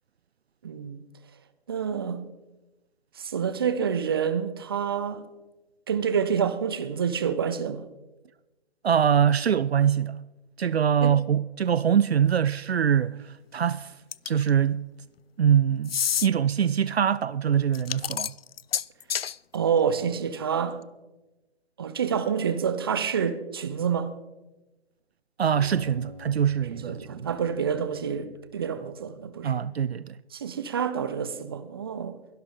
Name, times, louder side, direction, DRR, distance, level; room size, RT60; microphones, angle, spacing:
voice 1, 0.6-1.0 1.7-2.2 3.2-5.2 5.9-7.8 11.0-11.1 19.5-20.8 21.8-24.1 26.7-29.5 30.3-32.1, right 7 dB, 20° right, 0.6 m, -28 dB
voice 2, 8.8-10.2 10.6-13.9 14.3-14.9 15.4-16.0 16.2-18.3 25.4-27.3 29.4-30.2, right 8 dB, 70° right, 0.5 m, -23 dB
sound 1, 14.1-14.5 15.8-16.3 17.7-19.3, left 9 dB, 65° left, 0.4 m, -28 dB
Acoustic guitar, 25.5-29.1, left 2 dB, 15° left, 3.5 m, -48 dB
22.5 x 11.5 x 3.8 m
figure-of-eight pair, 150°, 33 cm